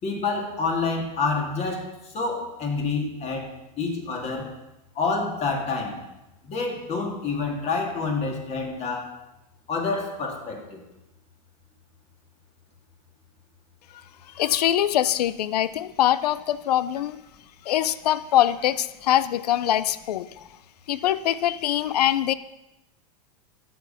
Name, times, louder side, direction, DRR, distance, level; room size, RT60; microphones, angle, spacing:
voice 1, 0.0-3.5 3.8-4.5 4.9-6.0 6.4-9.1 9.7-10.8, left 4 dB, 35° left, 2 dB, 2.7 m, -28 dB
voice 2, 14.4-17.2 17.7-20.4 20.9-22.3, left 12 dB, 90° left, 16 dB, 0.5 m, -23 dB
11.5 x 7.7 x 5.7 m, 0.95 s
supercardioid pair, 120°, 20 cm